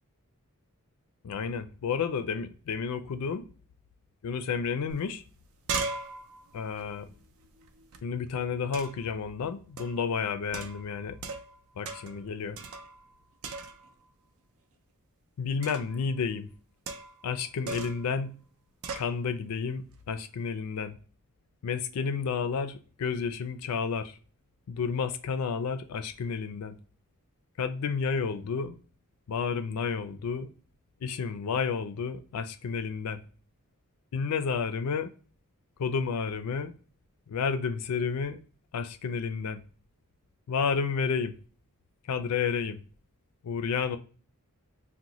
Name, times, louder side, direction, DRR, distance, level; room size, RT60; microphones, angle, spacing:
voice 1, 1.2-3.5 4.2-5.2 6.5-7.1 8.0-11.2 11.8-12.6 15.4-16.5 17.2-18.4 19.0-21.0 21.6-24.2 24.7-26.8 27.6-28.8 29.3-30.5 31.0-33.2 34.1-35.1 35.8-36.7 37.3-38.4 38.7-39.6 40.5-41.4 42.1-42.8 43.4-44.0, left 5 dB, 90° left, 0.4 m, -31 dB
sound 1, 4.9-5.0 5.3-8.0 8.7-9.1 9.8-10.0 10.5-11.6 11.8-12.2 12.6-13.1 13.4-14.0 15.6-16.0 16.9-17.3 17.7-18.1 18.8-19.1, right 4 dB, 65° right, 0.4 m, -38 dB
2.9 x 2.1 x 3.8 m
head